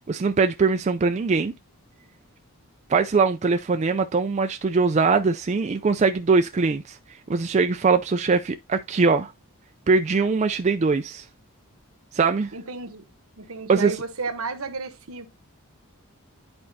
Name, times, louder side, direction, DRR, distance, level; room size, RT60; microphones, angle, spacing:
voice 1, 0.1-1.5 2.9-9.3 9.9-11.3 12.1-12.6 13.7-14.0, right 4 dB, 30° right, 0.4 m, -22 dB
voice 2, 12.5-13.0 13.4-15.3, right 4 dB, 70° right, 1.0 m, -32 dB
11.0 x 4.4 x 2.7 m
head